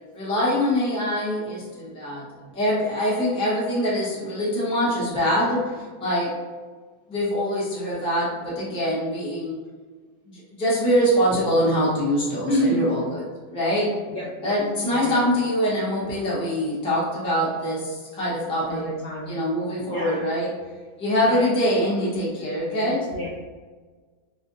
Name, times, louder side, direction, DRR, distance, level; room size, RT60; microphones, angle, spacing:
voice 1, 0.1-2.3 2.5-6.3 7.1-9.6 10.3-13.9 14.4-18.9 19.3-20.5 21.0-23.0, equal, 5° left, -8 dB, 0.4 m, -24 dB
voice 2, 12.5-12.9 14.1-14.6 14.9-15.3 18.6-19.3 19.9-20.2 21.2-21.5 22.8-23.3, equal, 75° left, -5 dB, 0.8 m, -28 dB
3.3 x 2.6 x 2.6 m, 1.4 s
omnidirectional pair, 2.1 m